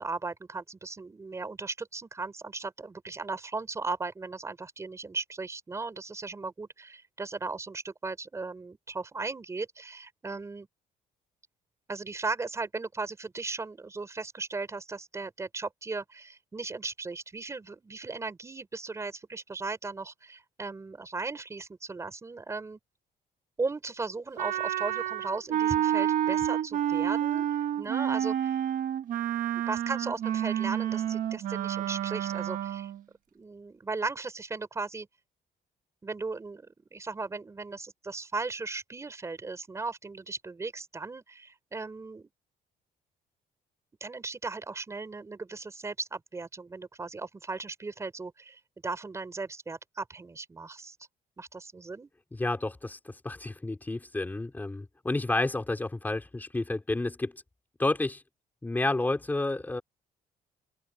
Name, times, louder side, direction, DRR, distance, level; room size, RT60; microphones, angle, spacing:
voice 1, 0.0-10.7 11.9-22.8 23.6-27.5 27.8-28.5 29.5-32.9 33.3-35.1 36.0-42.3 44.0-50.9 51.4-52.1, right 3 dB, 15° right, 5.1 m, -37 dB
Wind instrument woodwind instrument, 24.4-33.0, right 10 dB, 55° right, 1.2 m, -29 dB
voice 2, 52.3-57.4 57.8-58.2 58.6-59.8, left 2 dB, 10° left, 4.6 m, -30 dB
open air
cardioid pair, 165°, 16 cm